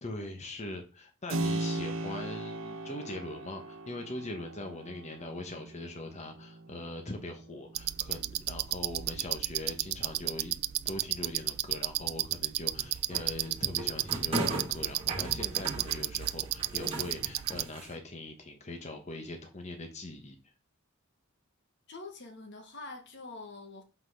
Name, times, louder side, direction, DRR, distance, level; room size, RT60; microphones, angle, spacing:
voice 1, 0.0-10.6 10.8-20.4, left 2 dB, 35° left, 1.2 m, -41 dB
Keyboard (musical), 1.3-9.9, right 2 dB, 85° right, 1.1 m, -39 dB
sound 1, 7.8-17.6, right 14 dB, 50° right, 0.4 m, -33 dB
sound 2, 12.7-18.0, right 1 dB, 30° right, 2.6 m, -38 dB
voice 2, 21.9-23.8, left 3 dB, 60° left, 1.5 m, -45 dB
5.9 x 5.8 x 5.8 m
head